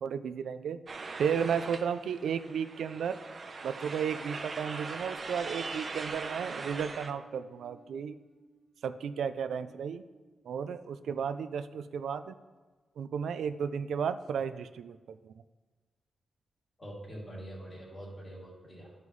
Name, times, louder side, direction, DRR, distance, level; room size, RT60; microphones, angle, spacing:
voice 1, 0.0-0.8 1.2-3.2 3.6-8.2 8.8-10.0 10.5-12.4 13.0-15.3, right 7 dB, 80° right, 10 dB, 0.3 m, -33 dB
sound 1, 0.9-7.1, right 4 dB, 35° right, 0.6 m, -41 dB
sound 2, 5.0-11.4, right 1 dB, 80° left, 1.9 m, -59 dB
voice 2, 16.8-18.9, right 1 dB, 25° left, -5 dB, 2.7 m, -44 dB
12.5 x 5.4 x 3.2 m, 1.3 s
wide cardioid pair, 140°, 0 cm